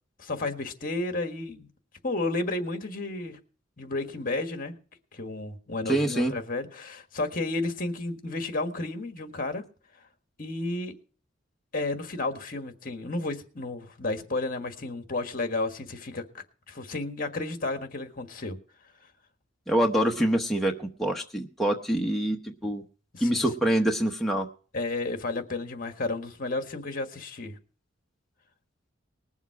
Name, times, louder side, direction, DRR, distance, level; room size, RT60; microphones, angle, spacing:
voice 1, 0.2-1.7 2.0-3.4 3.8-4.7 5.1-9.6 10.4-10.9 11.7-18.6 22.6-22.7 23.1-23.4 24.7-27.6, left 2 dB, 45° left, 1.6 m, -32 dB
voice 2, 5.9-6.3 19.7-22.8 23.2-24.5, right 1 dB, ahead, 1.0 m, -25 dB
20.0 x 7.3 x 4.8 m
head